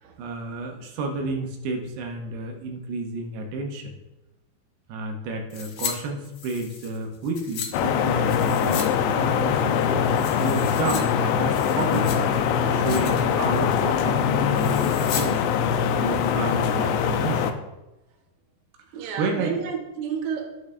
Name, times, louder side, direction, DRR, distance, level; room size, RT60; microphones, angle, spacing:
voice 1, 0.2-3.9 4.9-9.8 10.3-12.2 12.7-15.4 15.9-17.6 19.2-19.5, right 3 dB, 75° right, 2 dB, 3.1 m, -31 dB
sound 1, 5.5-5.9 6.2-7.7 8.3-8.9 9.2-9.3 9.7-11.0 11.4-12.4 12.7-13.2 13.5-13.8 14.5-15.3 15.6-15.7, left 7 dB, 65° left, 2.4 m, -35 dB
sound 2, 7.7-17.5, left 7 dB, 85° left, 2.8 m, -23 dB
voice 2, 18.9-20.5, right 6 dB, 55° right, 1 dB, 2.2 m, -30 dB
10.5 x 9.7 x 3.3 m, 0.98 s
omnidirectional pair, 5.0 m